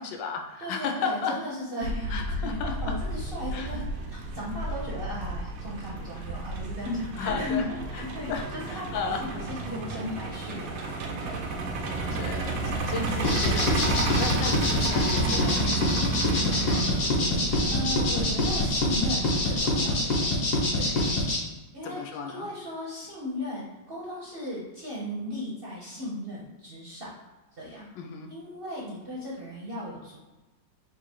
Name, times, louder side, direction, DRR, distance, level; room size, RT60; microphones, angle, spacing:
voice 1, 0.0-1.4 2.1-3.0 3.5-3.7 6.1-6.3 7.2-7.6 7.9-9.3 12.1-17.2 20.8-21.2 21.8-22.5 28.0-28.3, left 5 dB, 85° left, 4 dB, 1.3 m, -35 dB
voice 2, 0.6-2.6 2.8-3.8 4.1-8.9 9.2-11.4 11.9-12.2 12.9-13.5 14.9-15.0 17.7-20.3 20.8-21.1 21.7-27.2 27.5-27.9 28.3-30.3, left 1 dB, 50° right, -6 dB, 0.7 m, -36 dB
Truck, 1.8-19.6, right 2 dB, 90° right, 1.3 m, -32 dB
sound 1, 13.2-21.4, left 1 dB, 50° left, 1.2 m, -25 dB
3.7 x 2.5 x 4.4 m, 1.1 s
omnidirectional pair, 2.0 m